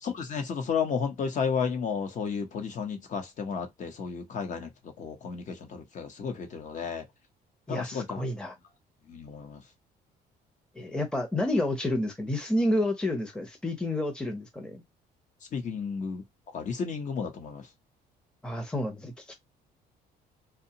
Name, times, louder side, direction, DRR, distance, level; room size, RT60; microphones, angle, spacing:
voice 1, 0.0-7.1 7.7-8.2 9.1-9.6 15.5-17.7, left 6 dB, 45° left, 0.9 m, -33 dB
voice 2, 7.7-8.5 10.7-14.8 18.4-19.4, left 1 dB, 5° left, 0.7 m, -30 dB
2.7 x 2.2 x 2.8 m
cardioid pair, 110°, 17 cm